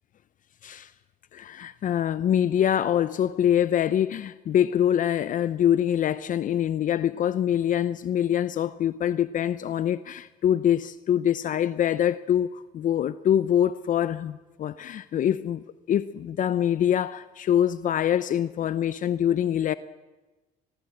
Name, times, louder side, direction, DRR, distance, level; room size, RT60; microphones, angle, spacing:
voice 1, 1.3-19.7, left 10 dB, 50° left, 0.7 m, -24 dB
24.0 x 21.0 x 7.9 m
cardioid pair, 110°, 17 cm